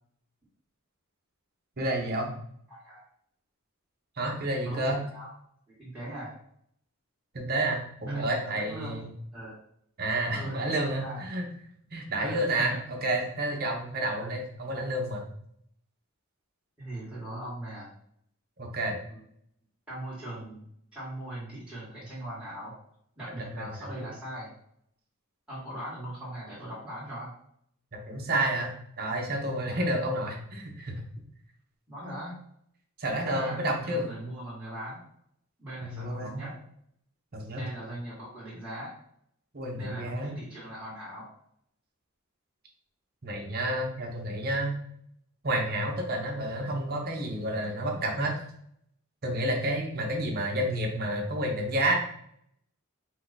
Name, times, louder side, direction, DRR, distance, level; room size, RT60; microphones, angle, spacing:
voice 1, 1.8-2.3 4.2-5.0 7.3-9.1 10.0-11.5 11.9-15.2 18.6-19.0 23.4-24.0 27.9-31.0 33.0-34.1 35.8-36.4 37.3-37.6 39.5-40.4 43.2-44.7 45.4-48.4 49.2-51.9, right 1 dB, 45° right, 0 dB, 0.9 m, -30 dB
voice 2, 2.7-3.0 4.6-5.3 5.8-6.3 8.1-9.6 10.3-11.3 12.2-12.6 14.1-14.4 16.8-17.9 19.1-19.2 19.9-20.6 20.9-22.7 23.2-24.5 25.5-27.3 29.7-29.9 31.9-32.4 33.2-35.0 35.6-36.5 37.6-38.9 39.7-41.3, right 1 dB, 5° right, -11 dB, 1.6 m, -40 dB
4.7 x 2.4 x 4.0 m, 0.68 s
head